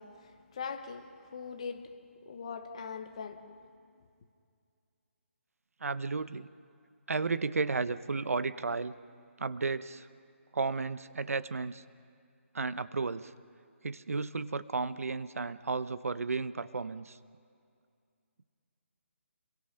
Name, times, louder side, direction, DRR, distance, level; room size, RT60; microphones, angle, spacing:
voice 1, 0.0-4.0, left 5 dB, 25° left, 1.0 m, -42 dB
voice 2, 5.8-6.5 7.1-8.9 9.4-10.1 10.5-11.8 12.5-13.3 13.8-17.2, right 4 dB, 90° right, 0.9 m, -33 dB
28.5 x 22.5 x 5.8 m
hypercardioid pair, 180°, 8 cm